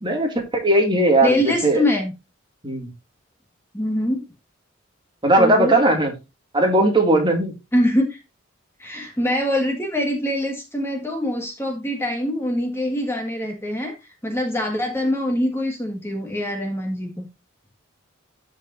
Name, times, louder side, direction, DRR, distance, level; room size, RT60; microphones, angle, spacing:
voice 1, 0.0-1.8 2.6-2.9 5.2-6.1 6.5-7.5, right 1 dB, 20° right, 2 dB, 2.4 m, -18 dB
voice 2, 1.2-2.1 3.7-4.2 5.4-5.8 7.7-8.2 8.8-17.2, left 1 dB, 10° left, 2 dB, 1.6 m, -24 dB
13.0 x 5.2 x 2.6 m, 0.25 s
head